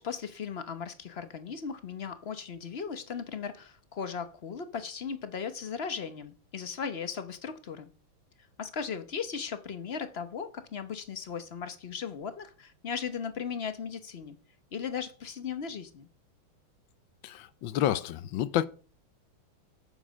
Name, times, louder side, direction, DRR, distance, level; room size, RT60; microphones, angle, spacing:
voice 1, 0.0-7.9 8.6-14.4 14.7-16.1, left 6 dB, 45° left, 0.8 m, -37 dB
voice 2, 17.2-18.6, left 12 dB, 70° left, 1.3 m, -29 dB
8.6 x 7.3 x 6.4 m
omnidirectional pair, 2.3 m